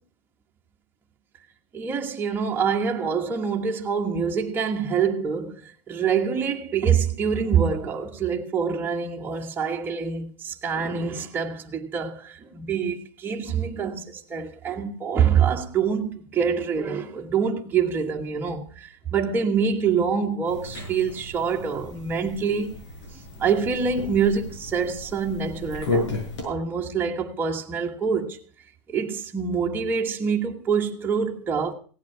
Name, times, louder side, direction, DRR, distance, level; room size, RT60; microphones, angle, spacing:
voice 1, 1.7-22.8 23.4-26.2 26.4-28.4 28.9-31.7, right 6 dB, 15° right, 1.3 m, -25 dB
sound 1, 20.4-26.4, left 2 dB, 85° left, 7.0 m, -33 dB
17.0 x 8.4 x 5.7 m
supercardioid pair, 160°, 15 cm